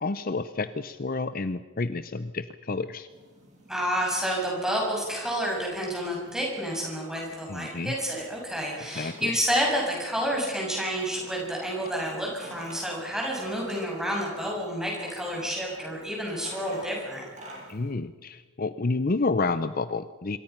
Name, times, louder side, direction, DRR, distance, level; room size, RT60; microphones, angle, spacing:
voice 1, 0.0-3.1 7.5-8.0 8.9-9.3 17.7-20.4, left 3 dB, 40° left, 12 dB, 0.6 m, -29 dB
sound 1, 3.1-17.9, equal, 35° right, 7.4 m, -49 dB
voice 2, 3.7-17.3, equal, 5° right, -2 dB, 6.9 m, -29 dB
26.5 x 22.5 x 5.9 m, 1.4 s
head